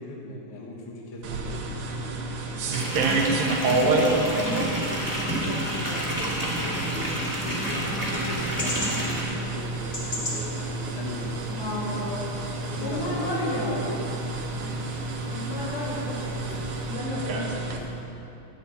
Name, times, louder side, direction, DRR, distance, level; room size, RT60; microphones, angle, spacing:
voice 1, 0.0-1.9 5.4-12.0 12.7-14.4, left 1 dB, 60° left, -2 dB, 2.7 m, -37 dB
sound 1, 1.2-17.8, right 3 dB, 65° right, 2.1 m, -30 dB
sound 2, 2.7-9.2, right 1 dB, 5° right, 1.9 m, -30 dB
voice 2, 3.0-5.0 11.5-12.3 12.8-13.9 14.6-14.8 15.3-16.5 16.8-17.8, left 1 dB, 85° left, -6 dB, 4.5 m, -33 dB
sound 3, 7.6-16.9, left 1 dB, 25° left, 1.9 m, -40 dB
16.5 x 10.5 x 4.2 m, 2.9 s
omnidirectional pair, 4.0 m